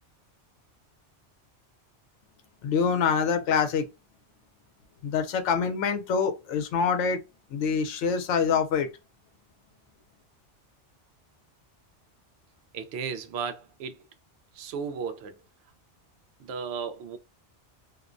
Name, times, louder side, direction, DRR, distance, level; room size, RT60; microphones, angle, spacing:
voice 1, 2.6-3.9 5.0-7.2 7.5-8.9, left 6 dB, 75° left, 0.9 m, -25 dB
voice 2, 12.7-14.1 14.5-15.4 16.4-17.2, right 6 dB, 70° right, 0.8 m, -35 dB
2.4 x 2.1 x 2.4 m
omnidirectional pair, 1.2 m